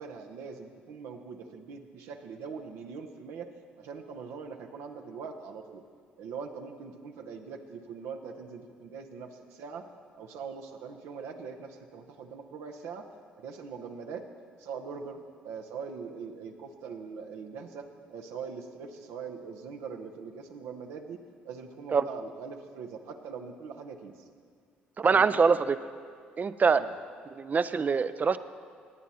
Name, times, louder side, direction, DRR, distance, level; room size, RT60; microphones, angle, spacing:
voice 1, 0.0-5.8 6.2-9.9 10.2-13.1 13.4-14.3 14.6-15.2 15.4-21.2 21.4-24.2 25.0-25.6 26.7-26.9, right 5 dB, 70° right, 4 dB, 0.9 m, -42 dB
voice 2, 25.0-25.8 26.4-26.8 27.4-28.4, right 5 dB, 35° right, 13 dB, 0.5 m, -24 dB
18.0 x 9.3 x 4.2 m, 2.1 s
hypercardioid pair, 50°, 5 cm